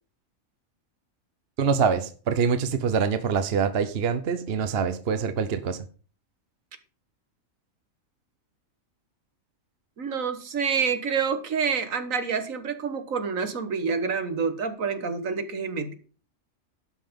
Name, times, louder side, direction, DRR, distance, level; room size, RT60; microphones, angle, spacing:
voice 1, 1.6-5.8, right 6 dB, 50° right, 1.0 m, -25 dB
voice 2, 10.0-15.9, right 6 dB, 75° right, 1.7 m, -28 dB
12.0 x 5.9 x 5.3 m
omnidirectional pair, 1.4 m